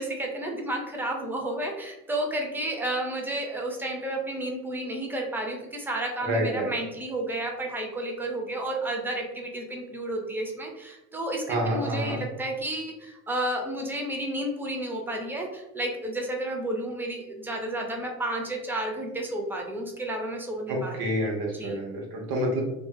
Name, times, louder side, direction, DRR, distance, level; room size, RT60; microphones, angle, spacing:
voice 1, 0.0-21.0 21.6-21.8, right 1 dB, 5° right, 1 dB, 0.4 m, -31 dB
voice 2, 6.2-6.7 11.5-12.2 20.7-22.6, right 1 dB, 55° right, 0 dB, 0.8 m, -28 dB
2.6 x 2.1 x 2.3 m, 0.96 s
hypercardioid pair, 60°, 43 cm